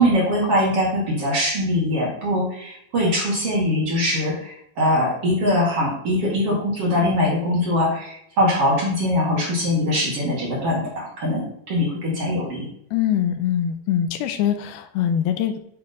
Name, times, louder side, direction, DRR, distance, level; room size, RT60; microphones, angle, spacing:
voice 1, 0.0-12.7, left 1 dB, 45° right, -4 dB, 2.3 m, -22 dB
voice 2, 12.9-15.6, left 9 dB, 85° left, 7 dB, 2.5 m, -23 dB
8.7 x 3.6 x 5.4 m, 0.70 s
omnidirectional pair, 4.5 m